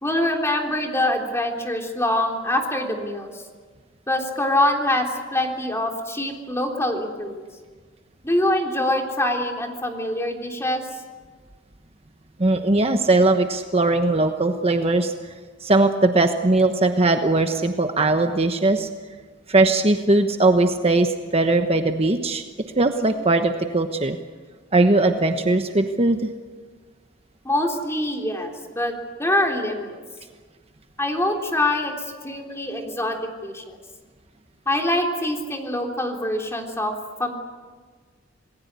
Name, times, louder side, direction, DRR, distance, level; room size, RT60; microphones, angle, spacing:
voice 1, 0.0-3.4 4.1-7.4 8.2-10.8 27.4-29.9 31.0-33.2 33.4-33.8 34.7-36.9 37.2-37.3, left 1 dB, 15° left, 2 dB, 3.5 m, -24 dB
voice 2, 12.4-15.1 15.6-18.9 19.5-22.4 22.8-24.2 24.7-26.3, right 2 dB, 30° right, 6 dB, 1.1 m, -19 dB
27.5 x 20.0 x 8.3 m, 1.5 s
head